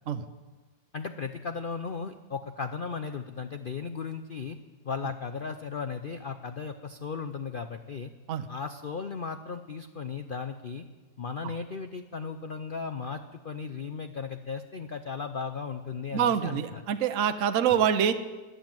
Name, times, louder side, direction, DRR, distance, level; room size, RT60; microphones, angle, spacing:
voice 1, 0.9-4.6 4.8-8.1 8.5-10.8 11.2-16.8, left 5 dB, 75° left, 8 dB, 0.4 m, -36 dB
voice 2, 16.1-18.1, right 8 dB, 60° right, 9 dB, 1.0 m, -25 dB
13.5 x 11.5 x 9.0 m, 1.3 s
omnidirectional pair, 1.8 m